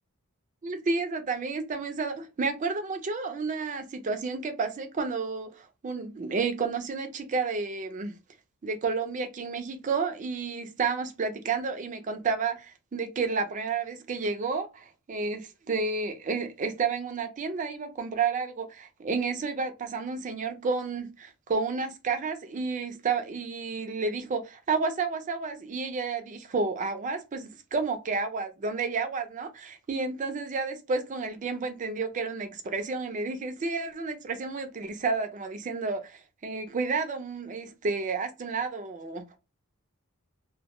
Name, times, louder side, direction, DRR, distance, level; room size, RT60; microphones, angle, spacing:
voice 1, 0.6-8.1 8.6-39.2, right 4 dB, 35° right, 0.4 m, -31 dB
2.2 x 2.1 x 2.8 m
head